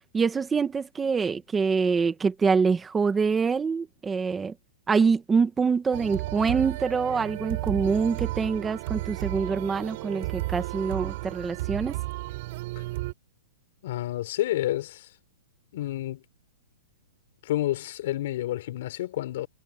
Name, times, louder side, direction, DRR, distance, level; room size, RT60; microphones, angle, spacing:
voice 1, 0.1-4.5 4.9-12.0, right 5 dB, 10° right, 1.1 m, -25 dB
sound 1, 5.9-13.1, right 20 dB, 40° right, 7.8 m, -33 dB
voice 2, 13.8-15.1 15.7-16.2 17.4-19.5, left 14 dB, 45° left, 4.3 m, -29 dB
hypercardioid pair, 170°, 0 cm